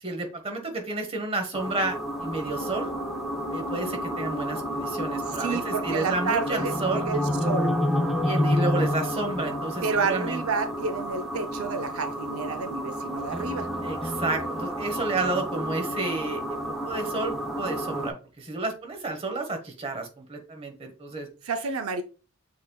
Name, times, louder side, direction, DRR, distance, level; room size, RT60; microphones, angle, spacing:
voice 1, 0.0-2.9 3.5-7.1 8.2-10.4 13.8-16.4 16.8-21.3, right 2 dB, 25° right, 0.9 m, -31 dB
sound 1, 1.5-18.1, equal, ahead, 0.4 m, -30 dB
Piano, 2.2-14.1, left 2 dB, 90° left, 0.8 m, -46 dB
voice 2, 5.3-7.8 9.8-13.7 21.5-22.0, right 4 dB, 85° right, 0.5 m, -30 dB
6.4 x 3.7 x 2.2 m
head